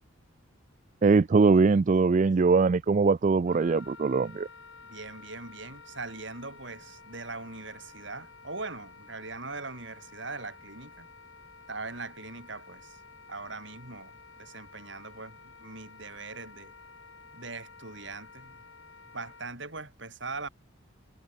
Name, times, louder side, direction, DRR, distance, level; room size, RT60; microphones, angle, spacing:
voice 1, 1.0-4.5, right 4 dB, 40° right, 0.4 m, -22 dB
Wind instrument woodwind instrument, 3.4-19.5, left 4 dB, 80° left, 8.0 m, -52 dB
voice 2, 4.8-11.1 11.7-13.0 13.3-16.7 17.3-18.7 19.1-20.5, right 3 dB, 65° right, 7.8 m, -41 dB
head